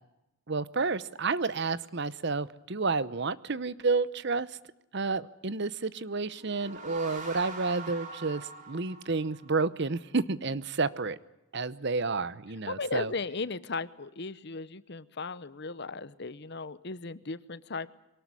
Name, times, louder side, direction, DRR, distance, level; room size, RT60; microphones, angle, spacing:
voice 1, 0.5-4.5 4.9-11.2 11.5-13.1, right 4 dB, 50° right, 18 dB, 0.8 m, -30 dB
sound 1, 6.3-9.8, right 3 dB, 35° right, 4.0 m, -43 dB
voice 2, 12.7-17.9, left 4 dB, 50° left, 17 dB, 0.9 m, -36 dB
23.5 x 19.0 x 9.8 m, 0.92 s
head